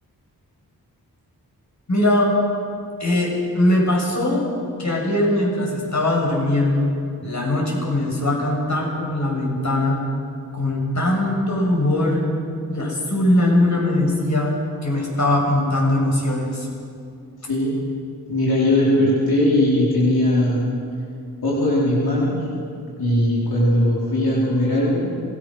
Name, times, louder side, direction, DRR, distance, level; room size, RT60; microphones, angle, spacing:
voice 1, 1.9-2.3 3.0-3.3 3.5-4.4 4.8-6.9 7.2-10.0 10.5-12.3 12.7-16.7, left 1 dB, 50° left, -2 dB, 7.2 m, -20 dB
voice 2, 17.5-17.8 18.3-20.7 21.4-22.5 23.0-25.1, left 1 dB, 80° left, -6 dB, 4.6 m, -19 dB
26.5 x 19.5 x 6.5 m, 2.5 s
wide cardioid pair, 75°, 37 cm